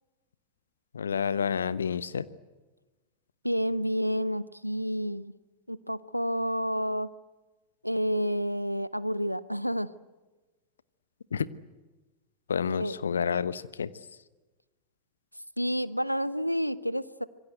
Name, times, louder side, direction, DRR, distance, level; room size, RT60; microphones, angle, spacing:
voice 1, 0.9-2.3 11.3-11.5 12.5-13.9, left 6 dB, 70° left, 17 dB, 1.1 m, -29 dB
voice 2, 3.4-5.3 5.7-7.1 7.8-9.9 12.8-13.0 15.6-17.2, equal, 90° right, 17 dB, 1.0 m, -29 dB
26.5 x 23.5 x 7.9 m, 1.2 s
figure-of-eight pair, 90°, 0 cm